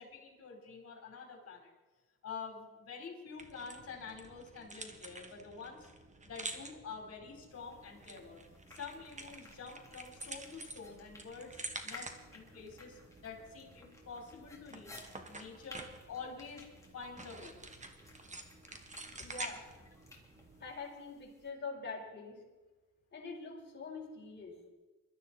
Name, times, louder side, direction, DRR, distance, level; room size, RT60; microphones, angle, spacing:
voice 1, 0.0-1.7 2.2-5.9 6.2-8.4 8.7-14.9 15.3-16.7 16.9-17.6, left 5 dB, 50° left, 2 dB, 4.5 m, -47 dB
sound 1, 3.4-20.7, right 2 dB, 25° right, 1.8 m, -49 dB
sound 2, 7.5-21.5, left 2 dB, 10° left, 3.7 m, -58 dB
voice 2, 19.2-19.6 20.6-22.4 23.1-24.5, left 4 dB, 35° left, -2 dB, 5.2 m, -44 dB
21.5 x 13.0 x 4.5 m, 1.2 s
cardioid pair, 90°, 30 cm